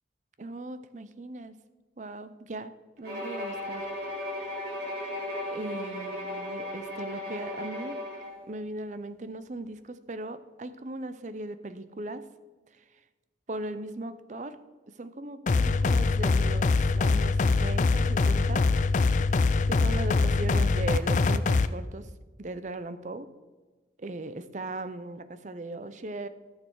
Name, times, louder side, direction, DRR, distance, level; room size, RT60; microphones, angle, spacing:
voice 1, 0.4-1.6 2.0-2.7 3.0-3.9 5.5-8.0 8.5-12.2 12.7-12.8 13.5-14.6 15.0-18.7 19.7-22.1 22.4-23.3 24.0-26.3, right 2 dB, 40° right, 12 dB, 0.5 m, -38 dB
Bowed string instrument, 3.0-8.4, left 1 dB, 60° right, 3.3 m, -36 dB
sound 1, 15.5-21.7, left 3 dB, 40° left, 0.3 m, -23 dB
14.0 x 6.7 x 4.6 m, 1.3 s
head